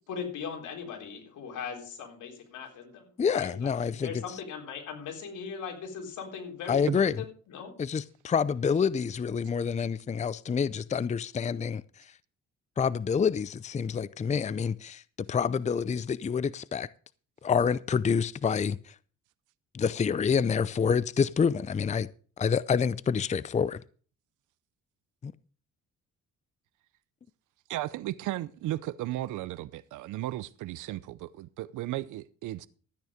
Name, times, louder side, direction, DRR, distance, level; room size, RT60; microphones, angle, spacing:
voice 1, 0.1-7.7, left 6 dB, 80° left, 3.9 m, -39 dB
voice 2, 3.2-4.1 6.7-7.1 7.8-11.8 12.8-15.0 15.3-16.9 17.4-18.9 19.7-22.1 22.4-23.8 25.2-25.3, left 6 dB, 25° left, 0.5 m, -27 dB
voice 3, 27.7-32.7, right 15 dB, 80° right, 0.7 m, -35 dB
13.5 x 9.3 x 5.0 m
cardioid pair, 90°, 30 cm